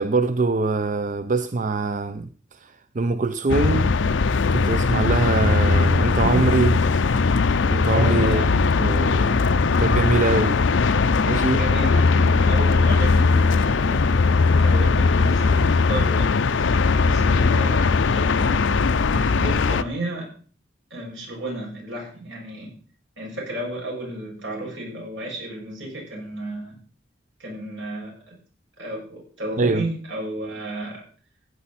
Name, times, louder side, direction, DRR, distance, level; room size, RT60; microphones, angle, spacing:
voice 1, 0.0-3.9 4.5-6.8 7.7-8.4 8.8-10.6 11.2-11.6 29.6-29.8, right 3 dB, 45° right, 0.6 m, -23 dB
sound 1, 3.5-19.8, left 4 dB, 80° left, 0.6 m, -19 dB
voice 2, 6.2-6.6 7.9-8.6 11.5-16.3 16.6-16.8 17.0-18.8 19.1-20.3 20.9-22.7 23.2-26.8 27.4-28.4 28.8-31.0, right 1 dB, 80° right, 6.9 m, -32 dB
16.0 x 9.6 x 4.3 m
head